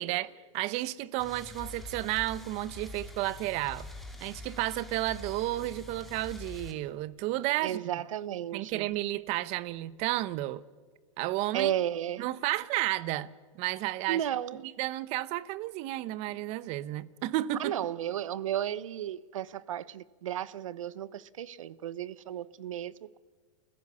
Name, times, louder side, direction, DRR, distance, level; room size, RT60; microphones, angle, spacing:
voice 1, 0.0-3.9 4.2-7.8 8.5-10.6 11.2-11.7 12.2-13.3 13.6-14.2 14.8-17.7, right 16 dB, 40° right, 0.9 m, -32 dB
sound 1, 1.2-6.7, left 3 dB, ahead, 2.5 m, -45 dB
voice 2, 7.6-8.9 11.5-12.3 14.1-14.6 17.6-23.2, right 11 dB, 90° right, 0.9 m, -34 dB
29.5 x 15.0 x 6.9 m
supercardioid pair, 135°, 16 cm